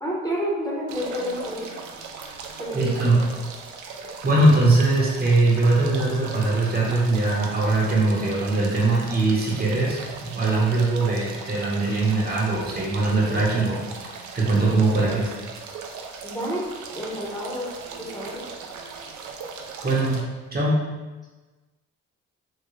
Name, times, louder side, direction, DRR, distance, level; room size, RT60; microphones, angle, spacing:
voice 1, 0.0-1.8 2.6-2.9 16.2-17.7 18.0-18.4, equal, 10° left, -5 dB, 0.8 m, -30 dB
sound 1, 0.9-20.2, right 5 dB, 75° right, 0.5 m, -38 dB
voice 2, 2.7-3.2 4.2-15.3 19.8-20.2 20.5-20.8, right 2 dB, 30° right, -4 dB, 0.8 m, -21 dB
3.6 x 2.1 x 3.1 m, 1.2 s
cardioid pair, 90°, 30 cm